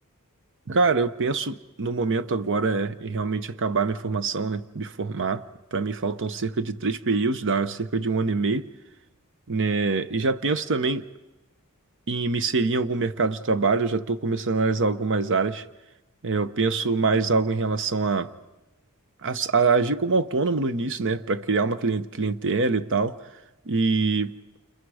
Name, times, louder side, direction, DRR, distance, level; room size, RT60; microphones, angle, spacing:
voice 1, 0.7-5.4 5.7-8.7 9.5-11.1 12.1-15.6 16.2-18.3 19.2-23.2 23.7-24.3, right 4 dB, 60° right, 0.8 m, -24 dB
29.0 x 28.5 x 4.9 m
head